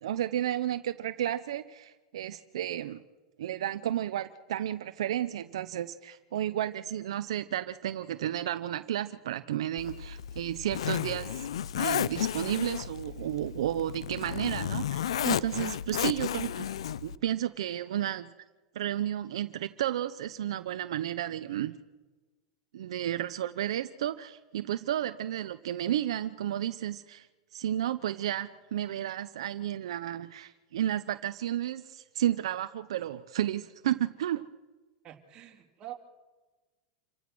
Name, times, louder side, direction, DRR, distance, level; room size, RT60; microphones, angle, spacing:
voice 1, 0.0-3.0 3.4-11.5 11.7-16.7 17.0-18.3 18.7-21.8 22.7-27.3 27.5-34.5, right 11 dB, 85° right, 11 dB, 0.8 m, -32 dB
Zipper (clothing), 9.8-17.2, left 10 dB, 90° left, 0.6 m, -33 dB
voice 2, 35.0-35.9, right 13 dB, 35° right, 2 dB, 3.5 m, -45 dB
28.0 x 16.5 x 6.2 m, 1.2 s
supercardioid pair, 125°, 3 cm